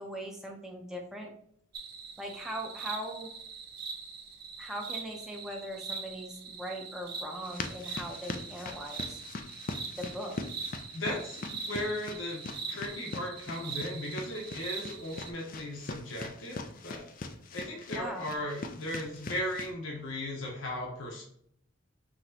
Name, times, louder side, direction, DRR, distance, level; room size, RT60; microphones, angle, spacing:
voice 1, 0.0-1.3 2.2-3.3 4.6-9.2 9.9-10.4 17.9-18.3, equal, 5° right, 0 dB, 0.8 m, -40 dB
sound 1, 1.7-15.3, right 5 dB, 50° right, 0.6 m, -42 dB
sound 2, 7.4-19.7, left 3 dB, 45° left, 0.4 m, -42 dB
voice 2, 10.9-17.0 17.5-21.2, left 1 dB, 80° left, -1 dB, 1.0 m, -37 dB
5.9 x 3.0 x 2.8 m, 0.66 s
head